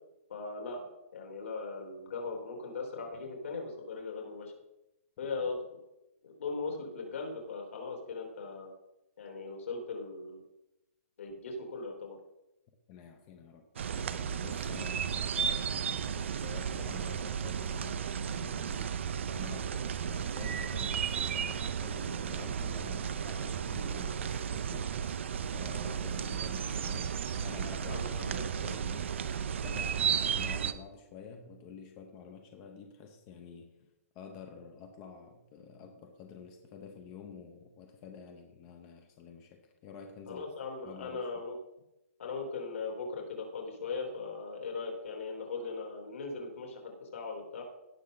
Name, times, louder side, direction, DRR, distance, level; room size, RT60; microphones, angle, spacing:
voice 1, 0.3-0.8 1.1-4.5 5.2-5.6 6.2-8.7 9.2-10.4 11.2-12.2 27.8-28.8 40.3-41.5 42.2-47.6, left 4 dB, 65° left, 1 dB, 3.5 m, -39 dB
voice 2, 12.9-33.8 34.1-40.5 40.8-41.3, left 6 dB, 20° left, 4 dB, 0.8 m, -49 dB
sound 1, 13.8-30.7, right 7 dB, 55° right, 0.7 m, -34 dB
17.0 x 6.5 x 3.9 m, 0.93 s
hypercardioid pair, 175°, 8 cm